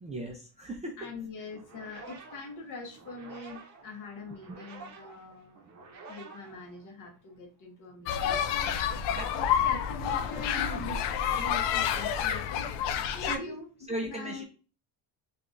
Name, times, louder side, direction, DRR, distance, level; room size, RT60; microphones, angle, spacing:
voice 1, 0.0-1.0 9.1-9.3 13.2-13.6 13.9-14.4, right 1 dB, 15° right, 1 dB, 0.4 m, -37 dB
voice 2, 1.0-5.6 6.1-12.7 13.1-13.7 14.0-14.4, left 3 dB, 45° left, 3 dB, 1.1 m, -43 dB
sound 1, 1.5-7.3, right 4 dB, 45° right, 0.7 m, -50 dB
sound 2, 8.1-13.4, left 9 dB, 80° left, 0.6 m, -29 dB
4.6 x 2.5 x 2.5 m, 0.36 s
cardioid pair, 140°, 42 cm